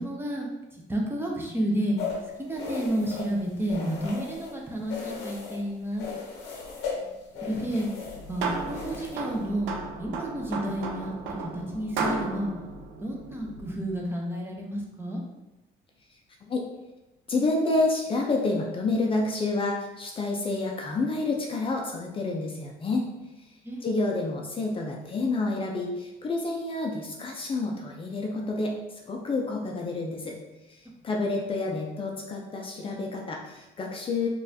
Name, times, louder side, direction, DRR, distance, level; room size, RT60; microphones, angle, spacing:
voice 1, 0.0-2.0 2.4-6.1 7.0-7.1 7.4-7.9 8.3-9.7 10.0-12.5 13.0-15.2 23.6-23.9, right 1 dB, 15° right, -1 dB, 0.6 m, -31 dB
sound 1, 2.0-4.6 4.9-5.6 6.0-9.5, left 5 dB, 90° left, 0.8 m, -37 dB
sound 2, 7.9-13.8, right 4 dB, 90° right, 0.5 m, -34 dB
voice 2, 17.3-23.1 23.8-28.7 29.1-30.3 31.0-34.3, left 2 dB, 30° left, 0 dB, 0.5 m, -29 dB
3.9 x 2.5 x 2.7 m, 0.98 s
cardioid pair, 110°, 17 cm